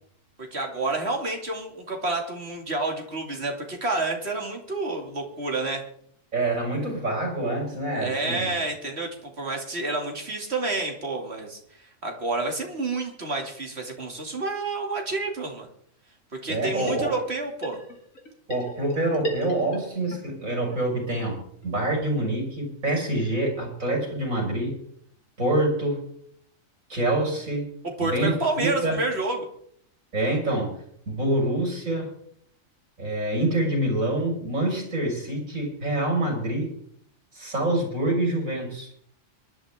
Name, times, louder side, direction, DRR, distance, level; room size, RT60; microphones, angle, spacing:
voice 1, 0.5-5.8 7.9-15.7 16.4-17.8 28.0-29.5, right 3 dB, 50° right, 2 dB, 2.8 m, -29 dB
voice 2, 6.3-8.5 16.5-17.1 18.5-24.8 25.4-26.0 26.9-27.7 28.0-29.0 30.1-32.1 33.0-36.7 37.3-38.9, right 1 dB, 85° right, 0 dB, 6.0 m, -26 dB
sound 1, 16.5-17.4 17.6-20.2 20.5-20.6 20.7-20.8 21.2-21.3 21.6-21.7 21.9-22.0 22.4-22.5, right 2 dB, 80° left, 3.3 m, -36 dB
24.5 x 12.0 x 3.6 m, 0.66 s
omnidirectional pair, 1.4 m